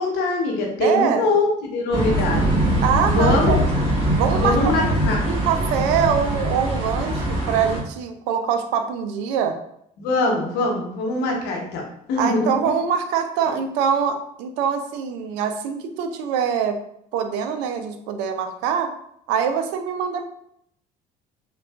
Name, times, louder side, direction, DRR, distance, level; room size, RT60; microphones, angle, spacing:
voice 1, 0.0-2.5 3.0-3.6 4.4-5.2 10.0-11.8 12.1-12.5, left 2 dB, 75° left, 0 dB, 0.8 m, -22 dB
voice 2, 0.8-1.3 2.8-3.6 4.2-5.0 5.3-9.6 12.2-16.8 17.1-18.9 19.3-20.2, right 7 dB, 80° right, 7 dB, 0.4 m, -24 dB
sound 1, 1.9-7.8, right 1 dB, 35° right, 1.4 m, -22 dB
3.5 x 2.3 x 2.3 m, 0.72 s
supercardioid pair, 70°, 17 cm